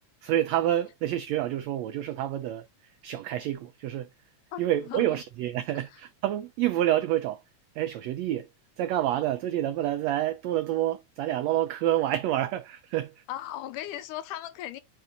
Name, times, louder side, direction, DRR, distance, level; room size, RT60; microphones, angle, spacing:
voice 1, 0.2-4.1 4.6-7.4 7.7-8.5 8.8-13.2, right 12 dB, 90° right, 1.5 m, -28 dB
voice 2, 4.5-5.2 5.9-6.0 13.3-14.8, left 13 dB, 90° left, 2.3 m, -37 dB
5.6 x 4.5 x 3.8 m
omnidirectional pair, 3.6 m